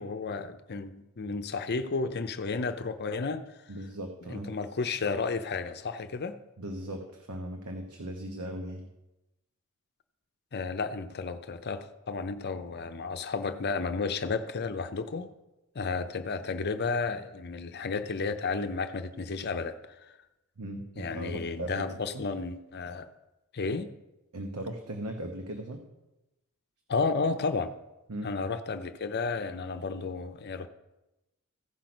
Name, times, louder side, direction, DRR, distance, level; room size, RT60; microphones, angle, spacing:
voice 1, 0.0-3.4 4.3-6.4 10.5-15.3 15.7-20.1 21.0-23.1 23.5-23.9 26.9-27.7 28.2-30.7, left 4 dB, 50° left, 10 dB, 0.6 m, -32 dB
voice 2, 3.7-4.5 6.6-8.8 20.6-21.8 22.1-22.2 24.3-25.8 28.1-28.3, right 1 dB, 85° right, 4 dB, 1.1 m, -38 dB
15.5 x 5.1 x 6.1 m, 0.97 s
head